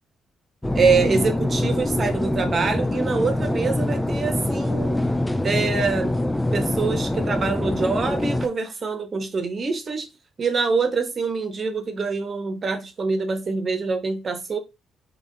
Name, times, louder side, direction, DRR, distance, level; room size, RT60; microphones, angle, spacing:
sound 1, 0.6-8.5, left 1 dB, 10° left, 0.5 m, -24 dB
voice 1, 0.7-5.0 5.4-6.1 6.5-10.1 10.4-14.6, right 4 dB, 40° right, 1.1 m, -25 dB
3.5 x 3.2 x 3.9 m
cardioid pair, 90°, 0 cm